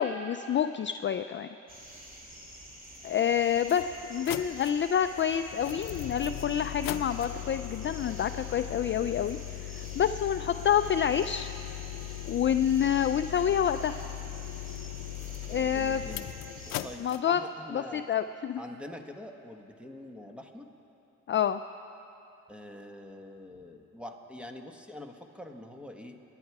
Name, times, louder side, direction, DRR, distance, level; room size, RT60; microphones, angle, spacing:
voice 1, 0.0-1.5 3.0-11.5 12.3-13.9 15.5-16.2 17.0-17.4 17.7-18.6 21.3-21.6, left 9 dB, 35° left, 9 dB, 0.4 m, -28 dB
sound 1, 1.7-17.0, equal, 25° right, 2.7 m, -48 dB
sound 2, 3.0-3.1 3.6-17.2, left 14 dB, 90° left, 0.6 m, -39 dB
voice 2, 15.4-16.1 16.8-18.0 18.6-20.7 22.5-26.2, left 1 dB, 5° right, 4 dB, 1.2 m, -45 dB
28.0 x 10.5 x 4.7 m, 3.0 s
cardioid pair, 105°, 33 cm